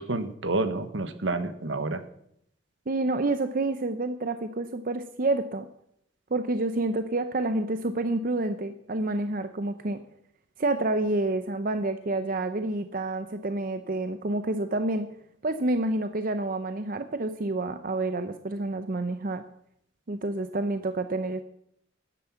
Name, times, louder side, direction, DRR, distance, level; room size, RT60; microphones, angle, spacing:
voice 1, 0.0-2.0, right 2 dB, 70° right, 10 dB, 1.2 m, -29 dB
voice 2, 2.9-5.7 6.3-10.0 10.6-15.1 15.4-19.4 20.1-21.4, right 2 dB, 45° right, 9 dB, 0.7 m, -28 dB
13.0 x 10.0 x 5.8 m, 0.73 s
head